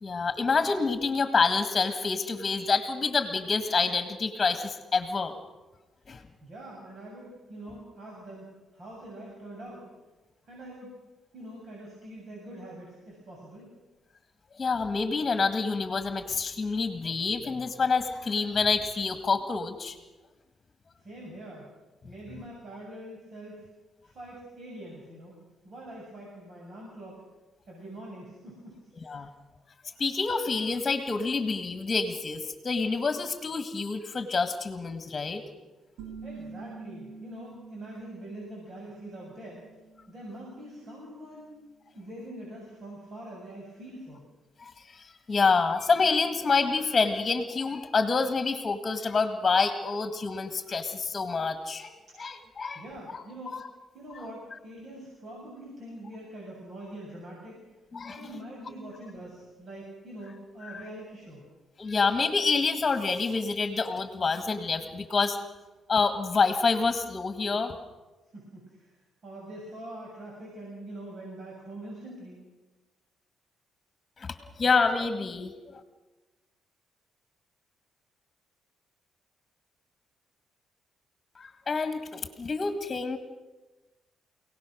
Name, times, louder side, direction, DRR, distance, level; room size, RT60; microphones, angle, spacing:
voice 1, 0.0-5.3 6.1-6.2 14.6-20.0 29.0-29.3 30.0-35.4 44.6-51.9 52.2-52.8 53.1-53.2 53.5-53.7 57.9-58.2 60.6-60.8 61.8-65.4 65.9-67.7 74.2-75.8 81.4-83.2, left 4 dB, 30° left, 7 dB, 1.9 m, -27 dB
voice 2, 6.4-8.5 8.7-9.8 10.5-11.0 11.3-13.7 21.0-21.7 22.0-23.7 24.0-25.4 25.6-27.2 27.7-28.7 29.0-29.2 36.2-39.6 40.1-41.6 41.9-44.2 52.7-53.6 53.9-57.6 58.1-61.4 68.3-69.0 69.2-72.4, right 1 dB, 50° right, -3 dB, 7.3 m, -44 dB
sound 1, 36.0-41.4, right 4 dB, 85° right, 3.2 m, -47 dB
29.0 x 18.0 x 6.4 m, 1.2 s
cardioid pair, 90°, 0 cm